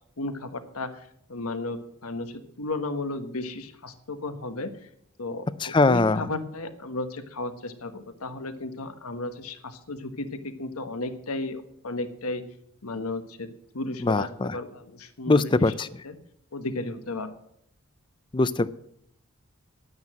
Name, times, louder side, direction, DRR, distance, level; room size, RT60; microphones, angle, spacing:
voice 1, 0.2-4.9 5.2-5.5 5.8-12.4 12.8-15.7 16.0-16.2 16.5-17.3, left 2 dB, 85° left, 9 dB, 1.3 m, -34 dB
voice 2, 5.6-6.2 14.0-14.6 15.3-15.9 18.3-18.7, left 3 dB, 20° left, 17 dB, 0.4 m, -22 dB
11.0 x 9.5 x 7.5 m, 0.73 s
head